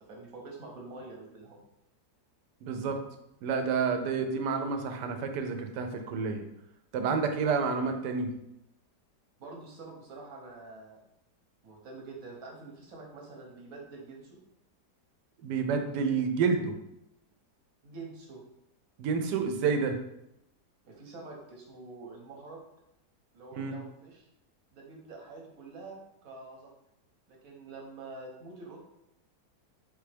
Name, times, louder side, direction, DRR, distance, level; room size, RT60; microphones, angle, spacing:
voice 1, 0.0-1.6 9.4-11.0 11.6-14.4 17.8-18.4 20.8-22.6 23.3-24.2 24.7-26.7 27.3-28.8, right 3 dB, 60° right, -1 dB, 1.2 m, -46 dB
voice 2, 2.6-3.0 3.4-6.4 6.9-8.3 15.4-16.7 19.0-20.0 23.6-23.8, right 5 dB, 80° right, 6 dB, 1.2 m, -29 dB
3.9 x 3.4 x 3.3 m, 0.83 s
omnidirectional pair, 1.8 m